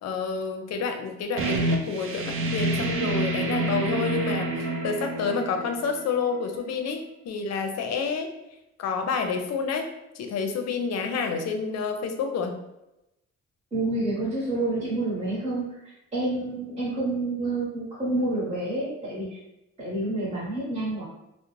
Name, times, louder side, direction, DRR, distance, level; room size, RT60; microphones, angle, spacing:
voice 1, 0.0-8.3 8.8-9.9 10.1-12.6, left 5 dB, 60° left, 6 dB, 0.5 m, -29 dB
sound 1, 1.4-6.8, right 2 dB, 45° right, 0.5 m, -28 dB
voice 2, 13.7-19.4 19.8-21.0, right 2 dB, 20° right, -7 dB, 1.0 m, -28 dB
2.4 x 2.0 x 3.0 m, 0.89 s
cardioid pair, 90°, 30 cm